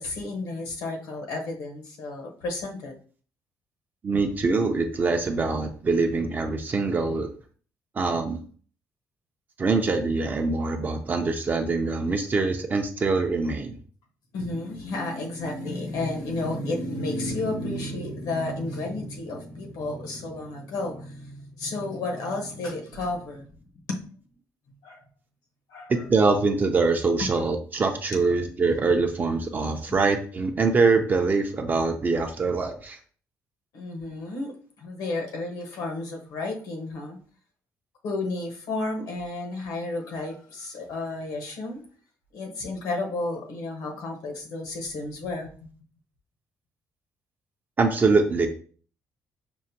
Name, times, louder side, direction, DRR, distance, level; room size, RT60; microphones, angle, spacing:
voice 1, 0.0-2.9 4.1-4.2 14.3-23.5 23.9-24.0 24.8-25.0 25.7-25.9 27.2-27.3 28.1-28.3 29.9-30.0 33.7-37.2 38.0-41.8 42.3-45.7, left 2 dB, 85° left, 1 dB, 1.1 m, -32 dB
voice 2, 4.0-7.3 8.0-8.4 9.6-13.8 25.9-33.0 47.8-48.5, right 4 dB, 30° right, 4 dB, 0.4 m, -24 dB
6.1 x 2.1 x 2.8 m, 0.43 s
cardioid pair, 145°, 6 cm